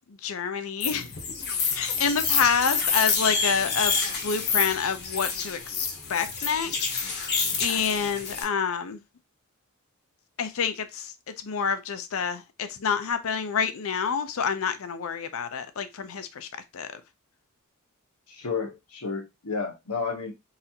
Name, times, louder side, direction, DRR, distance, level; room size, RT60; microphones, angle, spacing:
voice 1, 0.1-1.1 1.7-9.0 10.4-17.0, left 6 dB, 65° left, 0.5 m, -28 dB
sound 1, 0.8-8.4, left 5 dB, 50° left, 0.9 m, -28 dB
voice 2, 18.3-20.3, left 5 dB, 85° left, 1.0 m, -31 dB
4.1 x 2.5 x 2.8 m
head